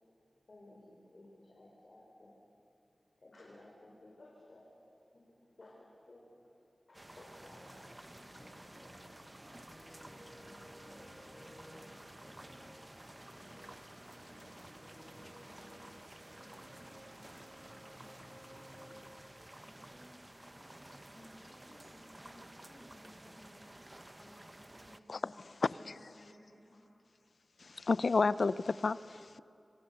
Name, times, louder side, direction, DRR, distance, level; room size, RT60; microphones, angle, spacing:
voice 1, 0.5-2.4 3.2-6.4 6.9-7.8, left 1 dB, 60° left, -3 dB, 4.5 m, -57 dB
sound 1, 6.9-25.0, right 1 dB, 20° right, 0.8 m, -53 dB
sound 2, 7.4-19.2, equal, 15° left, 5.7 m, -57 dB
voice 2, 19.5-23.8 24.0-25.4 25.7-26.9, left 1 dB, 40° left, -2 dB, 7.5 m, -60 dB
voice 3, 27.6-29.4, left 4 dB, 75° left, 17 dB, 0.5 m, -31 dB
26.5 x 26.0 x 6.9 m, 2.5 s
wide cardioid pair, 75°, 0 cm